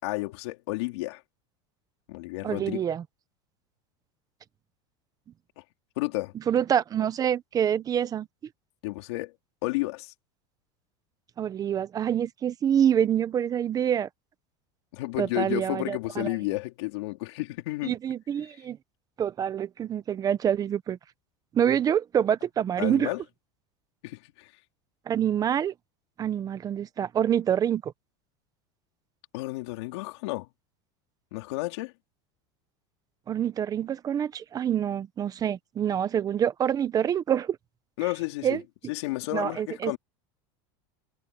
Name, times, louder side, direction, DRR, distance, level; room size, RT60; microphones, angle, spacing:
voice 1, 0.0-1.2 2.1-2.8 6.0-6.3 8.8-9.4 9.6-10.1 14.9-17.9 22.8-23.2 24.0-24.5 29.3-30.5 31.3-31.9 38.0-38.6 38.9-40.0, left 21 dB, 80° left, 3.9 m, -31 dB
voice 2, 2.4-3.0 6.5-8.3 11.4-14.1 15.2-16.3 17.8-18.8 19.2-21.0 21.5-23.1 25.1-25.7 26.2-27.9 33.3-37.6 38.4-38.6 39.3-40.0, right 9 dB, 25° right, 0.9 m, -26 dB
supercardioid pair, 145°, 14 cm